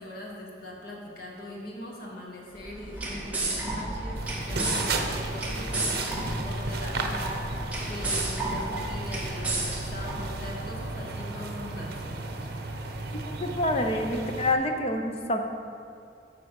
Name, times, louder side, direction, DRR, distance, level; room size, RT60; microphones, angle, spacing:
voice 1, 0.0-7.5 7.8-11.9, left 1 dB, 55° left, -2 dB, 1.6 m, -41 dB
sound 1, 2.5-10.7, right 2 dB, 10° right, 1.6 m, -33 dB
sound 2, 4.2-14.5, right 2 dB, 60° right, 0.9 m, -34 dB
voice 2, 13.4-15.4, left 1 dB, 35° left, 5 dB, 0.7 m, -27 dB
9.6 x 6.6 x 5.4 m, 2.5 s
head